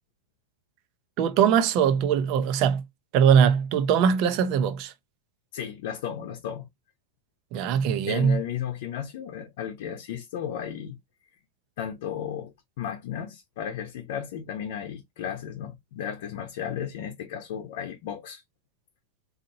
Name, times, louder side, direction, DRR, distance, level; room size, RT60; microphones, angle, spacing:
voice 1, 1.2-2.8 3.1-4.9 7.5-8.4, right 7 dB, 35° right, 0.6 m, -21 dB
voice 2, 5.5-6.7 8.1-11.0 11.8-18.4, left 9 dB, 55° left, 0.8 m, -34 dB
4.1 x 2.8 x 2.7 m
supercardioid pair, 170°, 0 cm